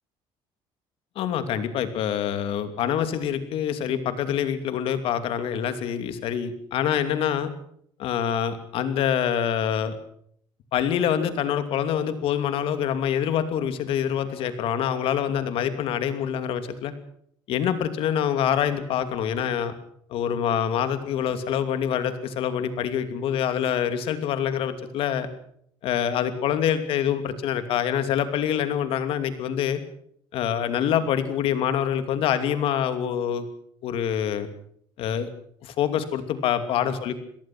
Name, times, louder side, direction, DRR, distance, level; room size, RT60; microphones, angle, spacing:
voice 1, 1.2-7.5 8.0-10.0 10.7-16.9 17.5-19.7 20.1-25.3 25.8-29.8 30.3-33.4 33.8-34.5 35.0-35.3 35.6-37.1, left 9 dB, 70° left, 10 dB, 2.7 m, -25 dB
26.5 x 18.0 x 6.1 m, 0.66 s
cardioid pair, 120°, 10 cm